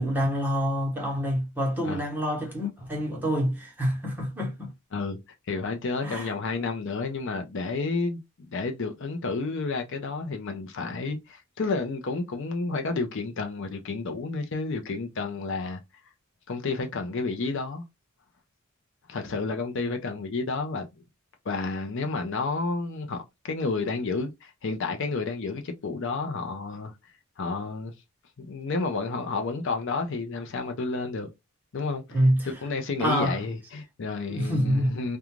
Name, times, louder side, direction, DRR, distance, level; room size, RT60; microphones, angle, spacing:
voice 1, 0.0-4.7 6.0-6.3 32.1-32.5 33.0-33.4 34.3-35.0, equal, 10° right, 1.0 m, -26 dB
voice 2, 5.5-8.2 8.5-15.8 16.5-17.8 19.1-20.9 21.4-26.9 27.4-27.9 28.4-31.3 31.7-32.2 32.6-35.2, left 3 dB, 60° left, 0.5 m, -30 dB
2.4 x 2.3 x 3.0 m
head